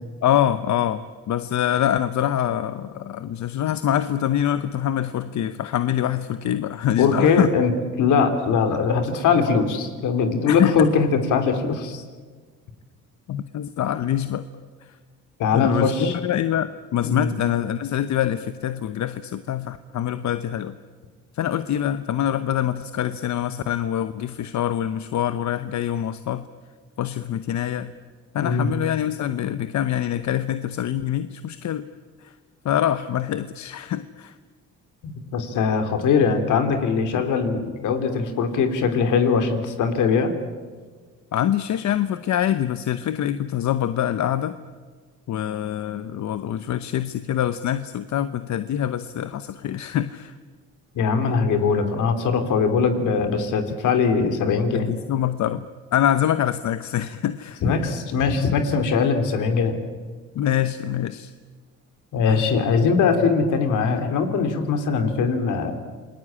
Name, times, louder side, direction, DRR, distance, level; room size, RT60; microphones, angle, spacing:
voice 1, 0.2-7.5 10.5-10.8 13.3-14.4 14.8-14.9 15.5-20.7 21.3-26.5 27.0-27.9 28.3-31.9 32.2-32.3 32.6-34.3 41.3-44.6 45.3-50.3 53.8-53.9 54.7-55.7 55.9-57.6 60.3-61.3 62.3-62.4, left 11 dB, 65° left, 11 dB, 1.0 m, -25 dB
voice 2, 7.0-7.7 8.0-12.0 15.4-16.1 17.0-17.3 28.4-28.7 35.0-40.3 50.9-54.9 57.6-59.8 62.1-65.7, left 5 dB, 80° left, 7 dB, 3.1 m, -21 dB
28.0 x 20.0 x 8.7 m, 1.5 s
cardioid pair, 90°, 30 cm